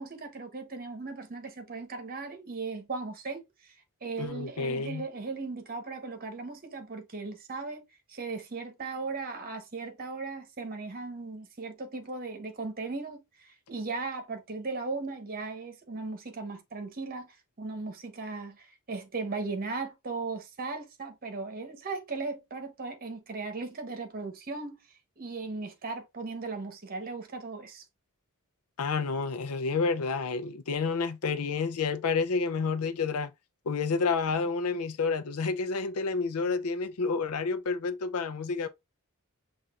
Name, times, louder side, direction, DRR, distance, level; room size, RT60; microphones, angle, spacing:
voice 1, 0.0-3.4 4.0-7.8 8.1-24.8 25.2-27.8, right 3 dB, 45° right, 1.0 m, -37 dB
voice 2, 4.2-5.1 28.8-33.3 33.7-38.7, left 4 dB, 80° left, 0.5 m, -29 dB
5.8 x 2.6 x 2.4 m
head